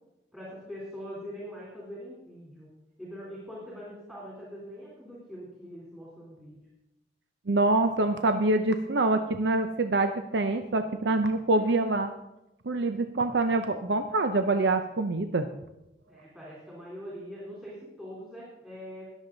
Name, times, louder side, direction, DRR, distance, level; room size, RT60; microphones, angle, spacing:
voice 1, 0.3-2.7 3.0-6.6 16.1-19.1, equal, 5° right, -7 dB, 3.4 m, -43 dB
voice 2, 7.5-12.1 12.7-15.5, right 2 dB, 75° right, 8 dB, 0.6 m, -25 dB
21.5 x 7.3 x 3.9 m, 0.90 s
head